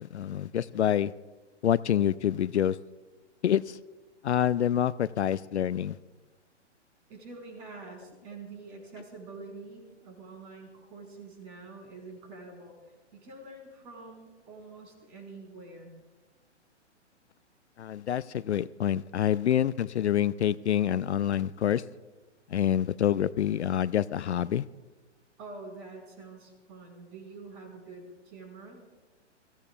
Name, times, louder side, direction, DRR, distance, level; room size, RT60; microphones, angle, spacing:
voice 1, 0.1-1.1 1.6-2.8 3.4-3.8 4.2-6.0 17.8-21.8 22.5-24.6, left 10 dB, 70° left, 18 dB, 0.5 m, -27 dB
voice 2, 7.1-12.8 13.1-15.9 25.4-28.8, right 3 dB, 35° right, 2 dB, 5.4 m, -46 dB
27.0 x 16.0 x 2.4 m, 1.2 s
figure-of-eight pair, 120°, 36 cm